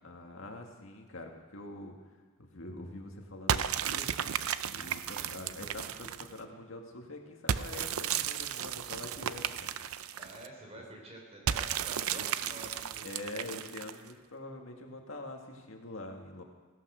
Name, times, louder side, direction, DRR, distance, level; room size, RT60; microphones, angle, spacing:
voice 1, 0.0-2.0 2.4-4.2 4.7-9.7 10.7-10.8 12.1-12.3 13.0-16.4, left 2 dB, 65° left, 2 dB, 2.0 m, -45 dB
sound 1, 3.5-6.4 7.5-10.5 11.5-14.1, right 8 dB, 80° right, 0.6 m, -34 dB
voice 2, 10.2-13.6, right 1 dB, 30° right, 0 dB, 3.8 m, -49 dB
16.5 x 11.5 x 6.4 m, 1.4 s
head